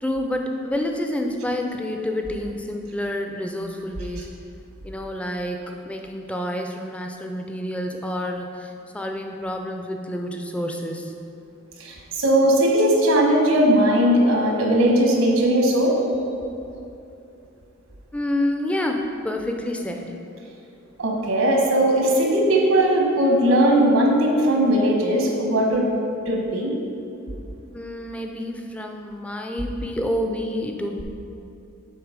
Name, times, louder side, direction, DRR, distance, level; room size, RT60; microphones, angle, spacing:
voice 1, 0.0-4.3 4.8-11.1 18.1-20.1 27.7-31.0, left 1 dB, 5° left, 3 dB, 0.4 m, -28 dB
voice 2, 11.8-15.9 21.0-25.9 26.3-26.7, right 1 dB, 80° right, 0 dB, 1.2 m, -19 dB
7.9 x 3.8 x 5.0 m, 2.7 s
head